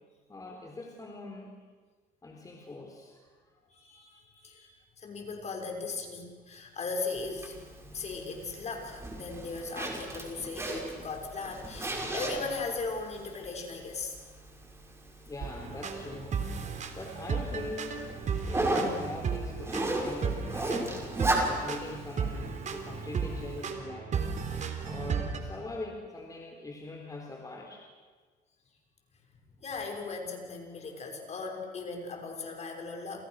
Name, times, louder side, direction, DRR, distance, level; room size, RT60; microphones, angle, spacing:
voice 1, 0.3-1.5 2.2-3.3 15.3-16.4 16.9-18.0 18.5-21.0 21.5-24.1 24.8-27.8, left 2 dB, 20° left, 1 dB, 4.0 m, -42 dB
voice 2, 3.7-14.2 29.6-33.2, left 4 dB, 40° left, 3 dB, 6.4 m, -38 dB
Zipper (clothing), 7.2-23.6, right 1 dB, 15° right, 6.1 m, -36 dB
sound 1, 15.4-25.4, right 6 dB, 45° right, 3.9 m, -35 dB
29.5 x 29.0 x 6.6 m, 1.4 s
cardioid pair, 110°, 17 cm